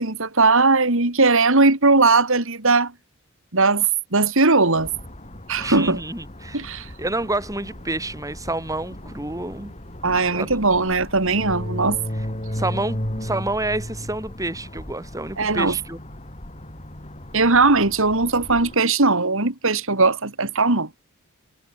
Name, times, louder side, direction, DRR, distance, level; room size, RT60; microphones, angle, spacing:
voice 1, 0.0-2.9 3.5-3.9 4.1-4.9 5.5-6.0 6.5-6.9 10.0-12.0 15.4-15.8 17.3-20.9, right 3 dB, 65° right, 2.9 m, -19 dB
sound 1, 4.8-18.8, equal, 30° left, 4.7 m, -35 dB
voice 2, 5.6-6.6 7.0-9.7 10.3-10.6 12.5-16.0, right 2 dB, 15° right, 4.6 m, -28 dB
head